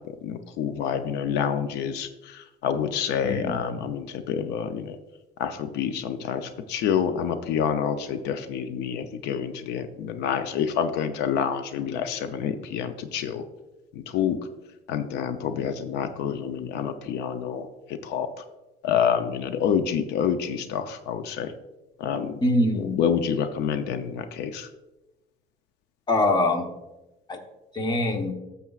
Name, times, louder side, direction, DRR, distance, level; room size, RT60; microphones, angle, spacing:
voice 1, 0.2-5.0 5.4-13.4 13.9-14.4 14.9-17.7 18.0-18.4 18.8-21.5 22.0-22.3 22.7-24.7, left 8 dB, 85° left, 9 dB, 0.6 m, -27 dB
voice 2, 3.2-3.6 22.4-22.9 26.1-26.7 27.3-27.4 27.7-28.3, left 1 dB, 25° left, 5 dB, 1.0 m, -23 dB
12.0 x 6.9 x 2.4 m, 1.0 s
cardioid pair, 110°, 17 cm